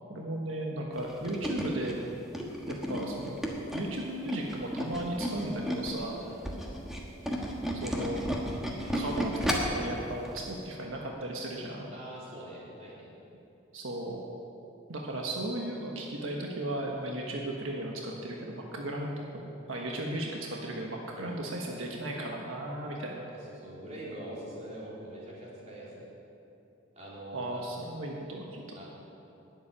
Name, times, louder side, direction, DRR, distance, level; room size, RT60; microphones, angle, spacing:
voice 1, 0.1-2.0 2.7-3.4 3.7-6.2 7.7-8.2 8.9-11.9 13.7-14.2 14.9-23.2 27.3-28.6, right 1 dB, 80° right, -1 dB, 1.4 m, -36 dB
Tools, 1.0-6.0 6.3-9.8 10.3-10.4 10.7-10.8, equal, ahead, 1.3 m, -33 dB
voice 2, 11.9-13.1 21.1-21.4 23.6-26.1 26.9-27.6 28.7-28.8, right 1 dB, 35° right, -7 dB, 3.8 m, -43 dB
11.5 x 8.4 x 9.9 m, 2.8 s
head